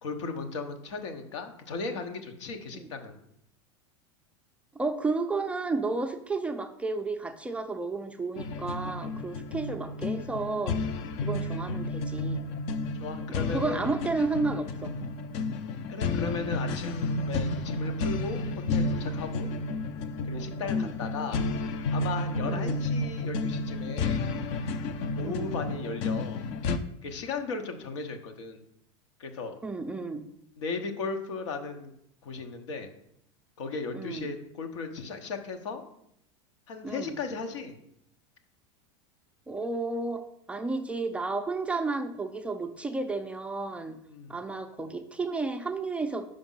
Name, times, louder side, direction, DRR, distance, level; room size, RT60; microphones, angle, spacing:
voice 1, 0.0-3.2 13.0-13.8 15.9-19.5 20.2-21.4 21.9-24.2 25.2-26.5 27.0-28.6 29.2-29.5 30.6-31.9 32.2-32.9 33.6-35.8 36.7-37.7 44.1-44.3, left 4 dB, 80° left, 5 dB, 1.1 m, -36 dB
voice 2, 4.7-10.8 11.2-12.4 13.3-14.9 20.6-20.9 22.4-22.8 25.3-25.5 29.6-30.2 33.9-34.3 36.8-37.1 39.5-40.2 40.5-44.0 44.3-46.3, right 3 dB, 10° right, 6 dB, 0.4 m, -32 dB
sound 1, 8.4-26.8, left 3 dB, 45° left, 0.6 m, -31 dB
5.2 x 5.1 x 5.6 m, 0.75 s
supercardioid pair, 135°, 15 cm